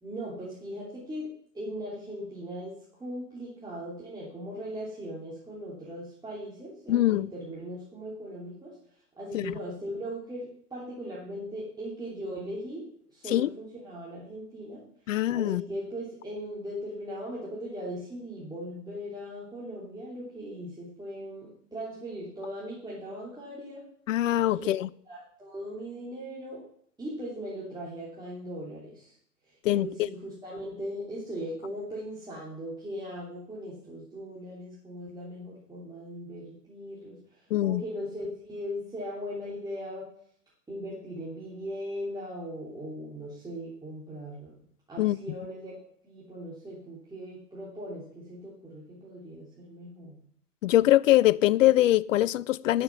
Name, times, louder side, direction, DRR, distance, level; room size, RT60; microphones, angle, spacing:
voice 1, 0.0-1.3 1.5-8.7 9.1-12.8 13.1-14.8 15.3-23.8 24.5-24.7 25.1-26.6 27.0-29.1 29.7-40.1 40.7-44.5 44.9-45.7 46.0-50.2, equal, 10° right, 3.1 m, -39 dB
voice 2, 6.9-7.3 9.3-9.5 13.3-13.5 15.1-15.6 24.1-24.9 29.6-29.9 37.5-37.8 45.0-45.2 50.6-52.8, left 14 dB, 55° left, 0.5 m, -23 dB
11.0 x 6.7 x 6.1 m
figure-of-eight pair, 95°, 47 cm